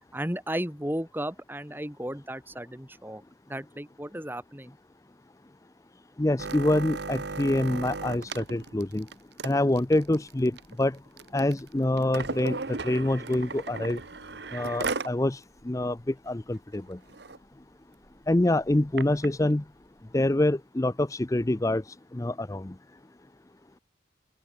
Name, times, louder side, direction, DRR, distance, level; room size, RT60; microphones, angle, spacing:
voice 1, 0.1-3.2 3.5-4.7, right 1 dB, 10° right, 2.9 m, -34 dB
voice 2, 6.2-9.1 9.4-11.0 11.3-14.0 14.5-17.0 18.3-19.6 20.1-22.7, left 1 dB, 15° left, 0.5 m, -26 dB
sound 1, 6.4-15.2 15.6-15.7 16.0-16.3 16.7-16.8 17.1-17.4 18.0-19.3 20.0-20.1, right 3 dB, 65° right, 1.3 m, -36 dB
open air
head